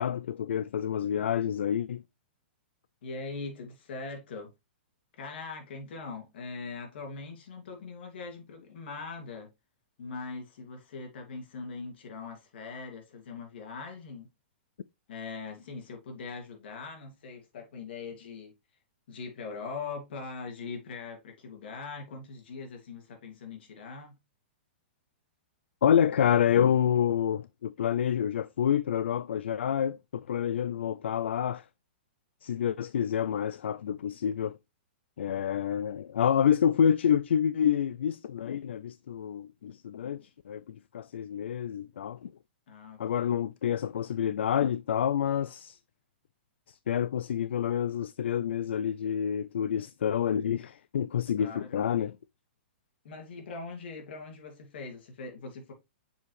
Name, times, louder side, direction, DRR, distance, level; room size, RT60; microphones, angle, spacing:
voice 1, 0.0-2.0 25.8-30.0 30.3-31.6 32.4-34.6 35.2-42.3 43.0-45.8 46.7-52.2, left 9 dB, 80° left, 0.3 m, -28 dB
voice 2, 3.0-4.5 5.2-9.5 10.0-14.3 15.1-18.5 19.1-24.2 42.7-43.3 51.4-51.8 53.0-55.7, left 4 dB, 65° left, 2.6 m, -41 dB
6.9 x 4.8 x 3.2 m
hypercardioid pair, 130°, 6 cm